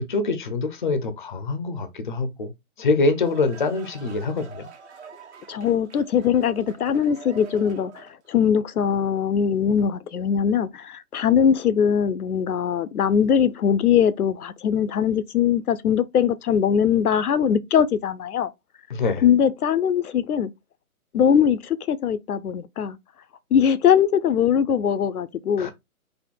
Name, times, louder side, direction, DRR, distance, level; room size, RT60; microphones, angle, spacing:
voice 1, 0.0-2.5 2.8-4.7 18.9-19.2 25.6-25.7, left 3 dB, 35° left, 0.6 m, -24 dB
sound 1, 2.9-8.3, right 5 dB, 50° right, 1.2 m, -45 dB
voice 2, 5.5-18.5 19.2-20.5 21.1-23.0 23.5-25.7, left 8 dB, 80° left, 0.7 m, -21 dB
4.2 x 2.5 x 4.4 m
hypercardioid pair, 160°, 44 cm